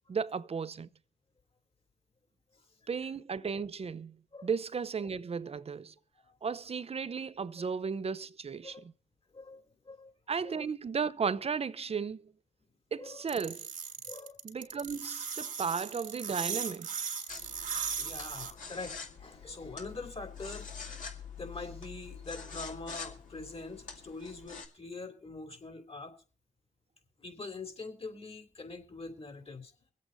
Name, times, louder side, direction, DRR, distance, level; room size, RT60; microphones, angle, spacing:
voice 1, 0.1-0.9 2.9-4.1 4.4-5.9 6.4-8.9 10.3-12.3 12.9-13.7 14.4-16.9, right 6 dB, 50° right, 0.7 m, -35 dB
voice 2, 9.3-10.1 10.4-10.6 13.0-13.3 14.0-14.4 17.8-20.7 21.4-26.1 27.2-29.7, left 3 dB, 45° left, 3.3 m, -44 dB
sound 1, 13.3-18.5, right 6 dB, 80° right, 2.0 m, -37 dB
sound 2, 17.3-24.7, left 6 dB, 75° left, 2.3 m, -46 dB
23.5 x 8.3 x 4.0 m
supercardioid pair, 45°, 14 cm